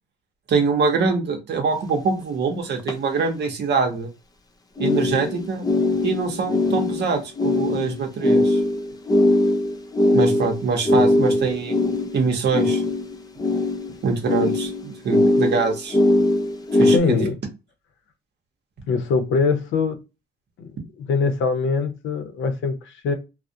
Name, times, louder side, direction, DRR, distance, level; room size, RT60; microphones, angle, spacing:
voice 1, 0.5-4.1 4.8-5.6 6.0-8.6 10.1-11.9 12.1-12.8 14.0-16.0 16.7-17.3, right 4 dB, 60° right, 0.8 m, -24 dB
sound 1, 1.9-2.0 2.8-2.9 4.8-17.0, left 2 dB, 20° left, 0.4 m, -21 dB
voice 2, 16.9-17.3 18.9-20.0 20.6-20.7 21.0-23.1, left 4 dB, 75° left, 0.6 m, -23 dB
2.3 x 2.0 x 2.6 m
cardioid pair, 90°, 20 cm